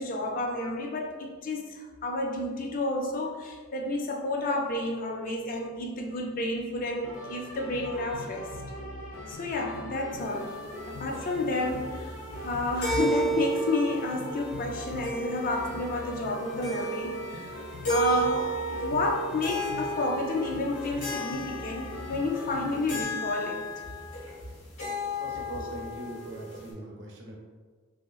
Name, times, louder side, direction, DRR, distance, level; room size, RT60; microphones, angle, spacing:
voice 1, 0.0-8.5 9.3-10.6 10.9-17.6 17.9-23.6, left 2 dB, 40° left, 1 dB, 0.3 m, -31 dB
sound 1, 7.0-23.0, left 1 dB, 65° left, 0.7 m, -41 dB
sound 2, 10.2-26.7, right 2 dB, 85° left, 1.0 m, -34 dB
voice 2, 25.1-27.4, right 2 dB, 55° right, -2 dB, 0.6 m, -40 dB
3.1 x 2.9 x 2.3 m, 1.5 s
head